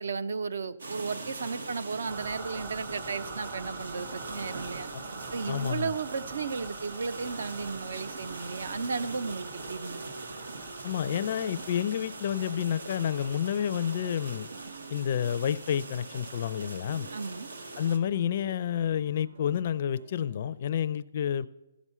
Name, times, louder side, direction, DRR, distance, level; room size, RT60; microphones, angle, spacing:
voice 1, 0.0-4.9 5.3-10.0 17.1-17.5, right 5 dB, 65° right, 0.7 m, -34 dB
sound 1, 0.8-18.0, right 2 dB, 90° right, 1.5 m, -42 dB
sound 2, 0.9-20.7, right 4 dB, 50° right, 1.3 m, -53 dB
sound 3, 2.1-18.3, right 4 dB, 25° right, 0.9 m, -47 dB
voice 2, 5.5-5.9 10.8-14.5 14.9-17.1 17.8-21.5, left 9 dB, 40° left, 0.4 m, -29 dB
15.5 x 6.1 x 5.6 m
hypercardioid pair, 165°, 0 cm